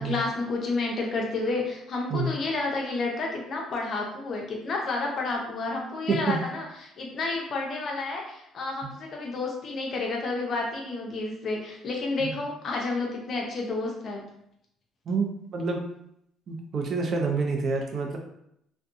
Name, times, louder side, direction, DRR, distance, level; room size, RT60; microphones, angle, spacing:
voice 1, 0.0-14.3, left 3 dB, 50° left, 0 dB, 0.6 m, -30 dB
voice 2, 6.1-6.4 12.2-12.3 15.1-15.3 15.5-15.8 16.5-18.2, right 4 dB, 50° right, 2 dB, 0.5 m, -27 dB
2.5 x 2.2 x 2.5 m, 0.75 s
cardioid pair, 95°, 0 cm